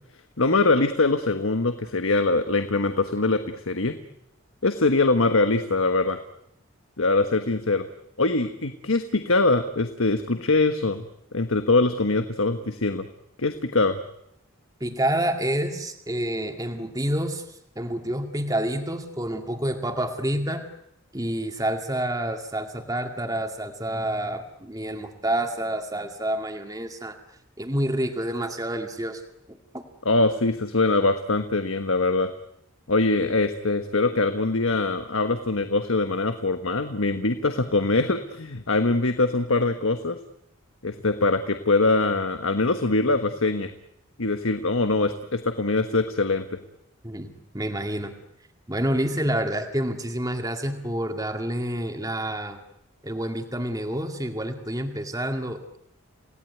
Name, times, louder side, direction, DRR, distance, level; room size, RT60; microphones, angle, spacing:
voice 1, 0.4-3.4 3.7-3.9 4.6-6.2 7.0-7.8 8.2-11.0 11.3-13.1 13.4-14.0 30.0-32.3 32.9-40.2 40.8-43.7 44.2-46.6, left 3 dB, 80° left, 8 dB, 1.4 m, -23 dB
voice 2, 14.8-20.6 21.1-27.2 27.6-29.2 29.5-29.8 47.0-48.1 48.7-52.6 53.0-55.8, right 1 dB, 15° right, 5 dB, 2.1 m, -28 dB
29.0 x 18.0 x 9.4 m, 0.80 s
head